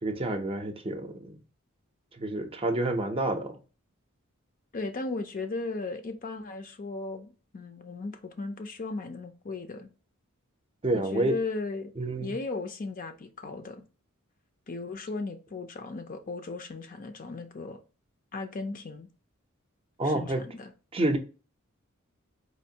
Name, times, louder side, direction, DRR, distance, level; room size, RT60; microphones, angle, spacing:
voice 1, 0.0-1.4 2.2-3.5 10.8-11.3 12.0-12.3 20.0-20.4 20.9-21.2, right 2 dB, 25° right, 0.6 m, -28 dB
voice 2, 4.7-9.9 10.9-11.9 12.2-13.9 14.7-17.8 18.3-19.1 20.0-20.7, left 3 dB, 40° left, 0.5 m, -36 dB
4.3 x 2.5 x 2.7 m
head